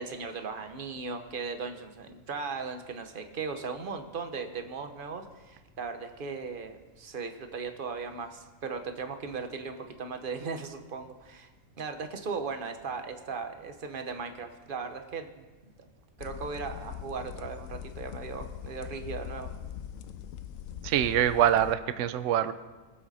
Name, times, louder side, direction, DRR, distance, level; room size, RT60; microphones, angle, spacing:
voice 1, 0.0-11.5 11.8-15.5 16.2-19.5, right 5 dB, 40° right, 7 dB, 1.1 m, -37 dB
sound 1, 16.2-21.8, left 10 dB, 75° left, 1.0 m, -41 dB
voice 2, 20.8-22.5, right 10 dB, 65° right, 12 dB, 0.9 m, -24 dB
23.0 x 7.7 x 4.2 m, 1.2 s
omnidirectional pair, 1.5 m